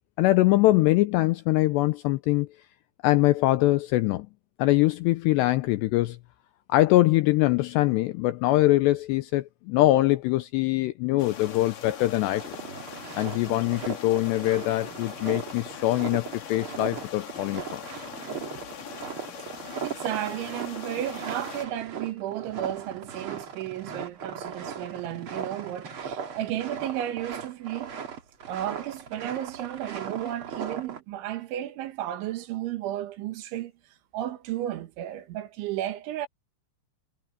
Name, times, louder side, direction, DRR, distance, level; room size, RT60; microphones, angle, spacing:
voice 1, 0.2-2.5 3.0-4.3 4.6-6.2 6.7-12.5 13.2-17.8, left 17 dB, 85° left, 2.5 m, -23 dB
sound 1, 11.2-21.7, left 8 dB, 50° left, 3.4 m, -41 dB
sound 2, 11.4-11.6 12.0-31.0, right 6 dB, 55° right, 1.5 m, -38 dB
voice 2, 19.8-28.0 28.5-33.7 34.1-36.3, right 12 dB, 75° right, 3.7 m, -33 dB
omnidirectional pair, 5.6 m